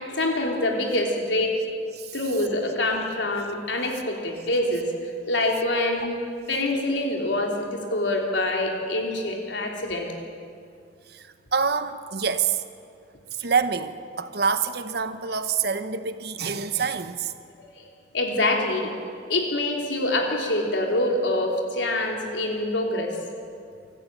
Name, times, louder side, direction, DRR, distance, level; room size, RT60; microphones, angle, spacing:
voice 1, 0.0-1.6 2.1-4.9 5.3-6.2 6.5-10.1 17.6-17.7 18.1-18.9 19.3-23.2, left 1 dB, 85° left, 1 dB, 3.5 m, -25 dB
voice 2, 11.1-12.6 13.4-17.3, right 6 dB, 60° right, 11 dB, 1.1 m, -26 dB
24.0 x 14.0 x 8.8 m, 2.3 s
head